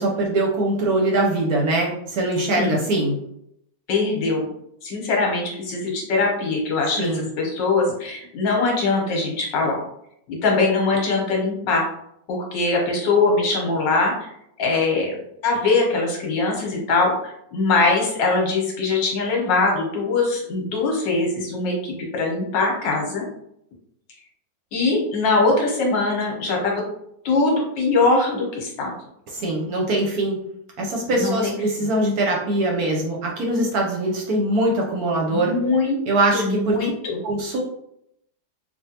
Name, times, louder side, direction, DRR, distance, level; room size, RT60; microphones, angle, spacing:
voice 1, 0.0-3.2 7.0-7.3 29.3-30.4 30.8-35.6 36.1-36.9 37.2-37.6, right 2 dB, 65° right, -1 dB, 1.0 m, -22 dB
voice 2, 3.9-4.5 4.8-7.0 7.4-9.8 10.3-11.8 12.3-14.3 14.6-15.1 15.4-23.2 24.7-26.8 27.2-28.9 31.1-31.5 35.3-36.0 36.3-37.2, left 3 dB, 80° left, 0 dB, 1.5 m, -22 dB
3.5 x 2.4 x 2.7 m, 0.74 s
omnidirectional pair, 2.0 m